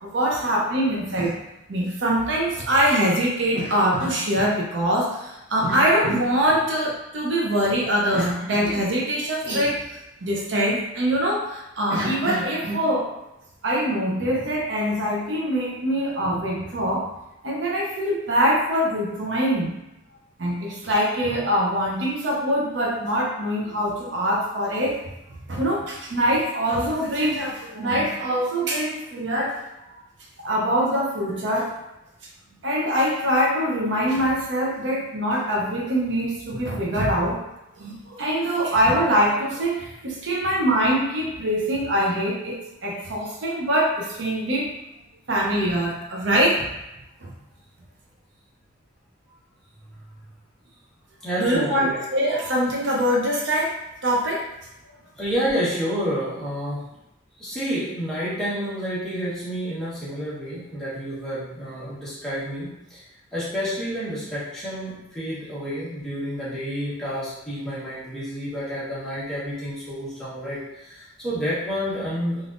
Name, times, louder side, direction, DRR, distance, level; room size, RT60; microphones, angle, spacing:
voice 1, 0.0-1.4 1.7-13.1 13.6-17.1 17.4-19.8 20.4-25.0 25.5-29.5 30.4-31.7 32.6-37.4 37.8-44.7 45.3-46.7 47.2-47.3 51.4-53.7 54.0-54.4, equal, 65° right, -2 dB, 0.6 m, -23 dB
voice 2, 51.2-52.1 55.2-56.9 57.3-63.1 63.3-72.5, equal, 5° left, -11 dB, 1.0 m, -29 dB
3.4 x 2.5 x 2.5 m, 0.93 s
head